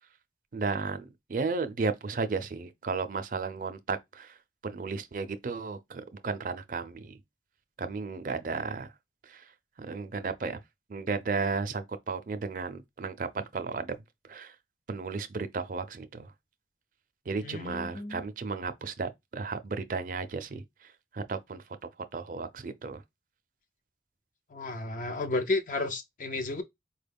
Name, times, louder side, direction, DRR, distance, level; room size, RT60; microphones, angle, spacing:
voice 1, 0.5-4.4 4.6-7.2 7.8-8.9 9.2-9.5 9.8-10.6 10.9-13.9 14.3-14.6 14.9-16.3 17.3-23.0, right 4 dB, 50° right, 0.4 m, -34 dB
voice 2, 17.4-18.2 24.5-26.6, left 2 dB, 45° left, 0.5 m, -32 dB
4.4 x 2.2 x 3.4 m
head